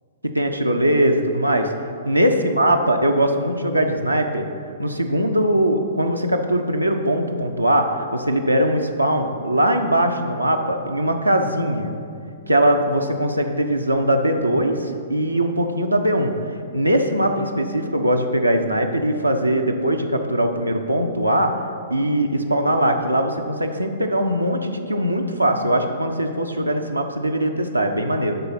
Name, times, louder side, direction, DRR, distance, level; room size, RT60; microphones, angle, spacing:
voice 1, 0.3-1.7 2.1-4.5 4.8-11.9 12.5-16.3 16.7-21.6 21.9-28.4, right 1 dB, 90° right, 3 dB, 0.6 m, -21 dB
10.5 x 3.9 x 5.8 m, 2.3 s
figure-of-eight pair, 110°, 0 cm